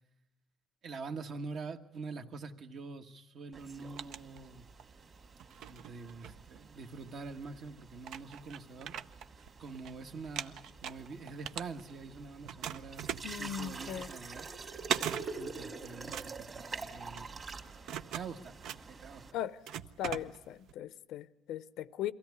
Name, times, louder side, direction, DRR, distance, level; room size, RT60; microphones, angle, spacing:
voice 1, 0.8-4.7 5.7-9.0 9.6-14.5 15.1-17.5 18.1-18.6 18.9-19.3, right 4 dB, 55° right, 1.3 m, -45 dB
sound 1, 3.5-19.3, right 4 dB, 35° right, 2.2 m, -47 dB
sound 2, 3.6-4.9 5.4-7.0 7.6-7.7 8.0-9.9 10.2-12.1 12.4-20.7, right 9 dB, 75° right, 0.7 m, -41 dB
voice 2, 13.2-14.1 19.3-19.6 20.0-22.1, left 11 dB, 80° left, 0.7 m, -38 dB
23.0 x 16.5 x 9.4 m
cardioid pair, 135°, 0 cm